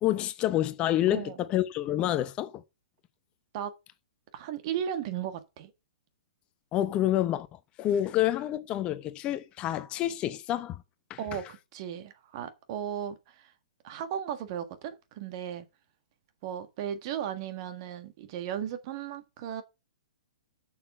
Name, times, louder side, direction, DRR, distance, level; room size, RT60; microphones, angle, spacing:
voice 1, 0.0-2.6 6.7-10.8 11.1-11.4, left 13 dB, 30° left, 0.8 m, -28 dB
voice 2, 4.3-5.7 11.2-11.4 11.7-13.5 13.8-15.6 16.4-19.6, right 9 dB, 45° right, 1.6 m, -35 dB
7.2 x 6.5 x 6.2 m
hypercardioid pair, 130°, 4 cm